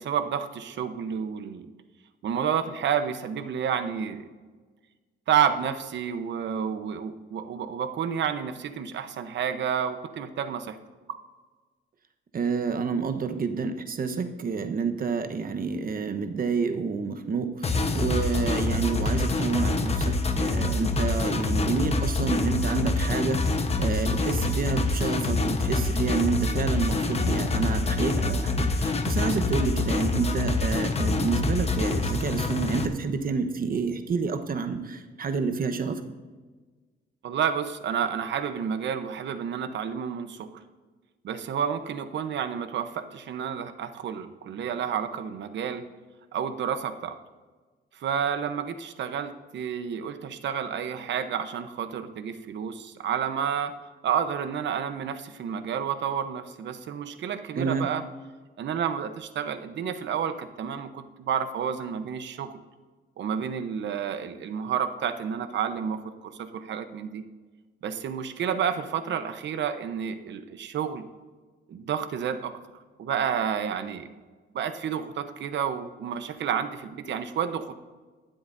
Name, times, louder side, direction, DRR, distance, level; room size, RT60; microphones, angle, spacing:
voice 1, 0.0-1.7 2.2-4.3 5.3-10.8 37.2-40.6 41.2-45.8 46.3-47.2 47.9-53.7 54.0-58.0 58.6-62.6 63.2-67.2 67.8-71.0 71.7-72.5 73.0-74.1 74.5-77.7, right 8 dB, 65° right, 9 dB, 1.0 m, -30 dB
voice 2, 12.3-36.0 57.5-57.9, right 5 dB, 45° right, 7 dB, 1.1 m, -29 dB
sound 1, 17.6-32.9, left 3 dB, 30° left, 1.1 m, -26 dB
22.0 x 7.8 x 2.7 m, 1.4 s
cardioid pair, 90°, 20 cm